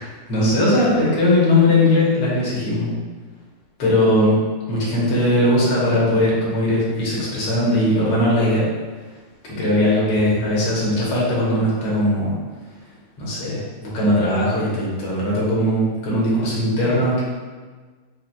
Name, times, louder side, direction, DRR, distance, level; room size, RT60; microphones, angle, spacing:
voice 1, 0.3-2.9 3.8-4.4 4.7-8.7 9.4-12.3 13.2-17.2, left 1 dB, 85° left, -6 dB, 1.9 m, -19 dB
5.6 x 2.1 x 2.3 m, 1.4 s
omnidirectional pair, 2.3 m